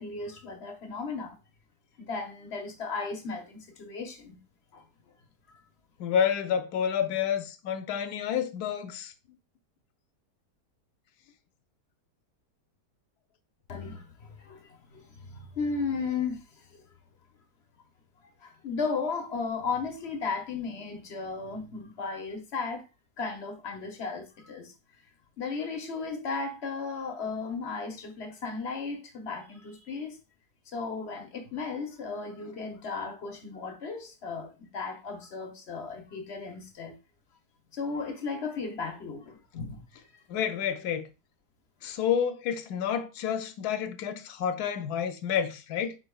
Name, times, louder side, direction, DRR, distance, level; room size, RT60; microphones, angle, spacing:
voice 1, 0.0-1.4 2.0-4.4 4.7-4.8 13.7-16.7 18.4-22.8 23.2-24.7 25.4-30.2 30.7-36.9 37.7-40.0 41.8-41.9, left 4 dB, 50° left, 0.9 m, -35 dB
voice 2, 6.0-9.1 40.3-41.1 41.8-46.0, left 8 dB, 70° left, 1.1 m, -29 dB
5.1 x 4.6 x 2.3 m
omnidirectional pair, 1.8 m